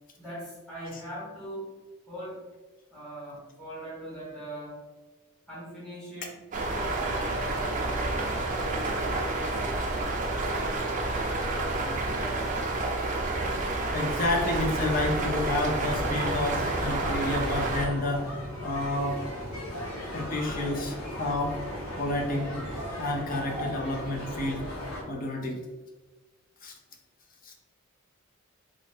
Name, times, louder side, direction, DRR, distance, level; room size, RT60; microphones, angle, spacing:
voice 1, 0.1-1.7 2.1-2.5 2.9-4.8 5.5-6.4 6.6-8.5 8.8-10.8 11.6-12.5, right 1 dB, 5° left, -9 dB, 1.4 m, -41 dB
sound 1, 6.5-17.9, right 2 dB, 35° right, 0.4 m, -29 dB
voice 2, 13.9-18.3 18.6-19.2 20.1-21.6 22.0-22.7 23.0-24.7 25.1-25.6 26.6-26.7 27.4-27.5, left 2 dB, 40° left, 1 dB, 0.6 m, -30 dB
sound 2, 15.8-25.0, left 1 dB, 80° left, 1.4 m, -37 dB
3.1 x 2.5 x 3.6 m, 1.2 s
head